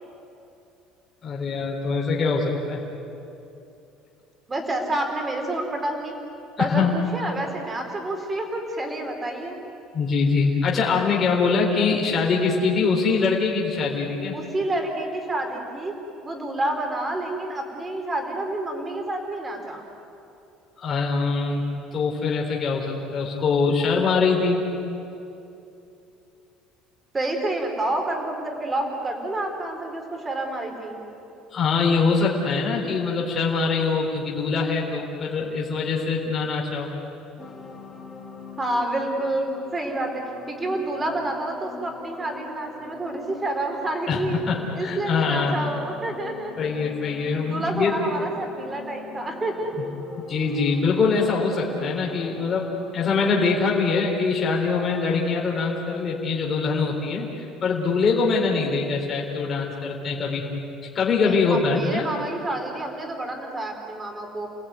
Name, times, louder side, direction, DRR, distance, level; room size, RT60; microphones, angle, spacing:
voice 1, 1.2-2.8 6.6-6.9 9.9-14.3 20.8-21.6 21.9-24.7 31.5-36.9 44.1-45.6 46.6-48.0 50.3-60.5 60.9-62.1, left 4 dB, 25° left, -2 dB, 3.8 m, -23 dB
voice 2, 4.5-6.1 6.6-9.6 14.3-15.9 16.2-19.8 27.1-31.0 38.6-40.1 40.5-44.4 44.7-46.5 47.4-49.9 58.5-58.9 61.2-64.5, right 1 dB, 15° right, 3 dB, 3.8 m, -29 dB
sound 1, 37.4-53.8, left 4 dB, 10° left, 2.9 m, -43 dB
30.0 x 19.5 x 9.5 m, 2.8 s
cardioid pair, 165°, 0 cm